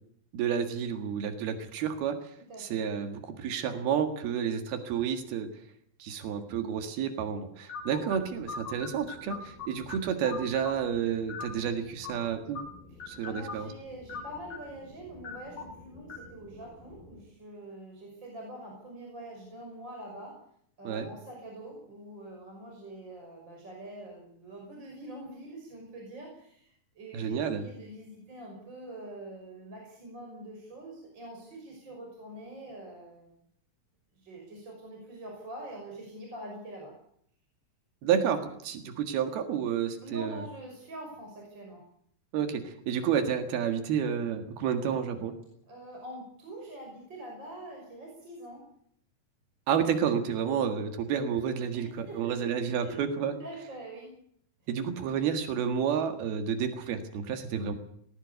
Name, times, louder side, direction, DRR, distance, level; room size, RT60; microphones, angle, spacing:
voice 1, 0.3-2.3 2.6-5.5 6.0-12.6 13.1-13.7 20.8-21.1 27.1-27.7 38.0-40.5 42.3-45.3 49.7-53.3 54.7-57.7, right 8 dB, 85° right, 7 dB, 3.7 m, -30 dB
sound 1, 7.7-17.2, left 4 dB, 70° left, 8.3 m, -43 dB
voice 2, 12.9-20.4 20.8-33.3 34.2-36.9 40.0-41.8 45.7-48.6 51.8-52.5 52.8-53.0 53.3-54.1, right 1 dB, 30° right, 0 dB, 6.4 m, -45 dB
20.0 x 18.0 x 8.2 m, 0.66 s
omnidirectional pair, 4.3 m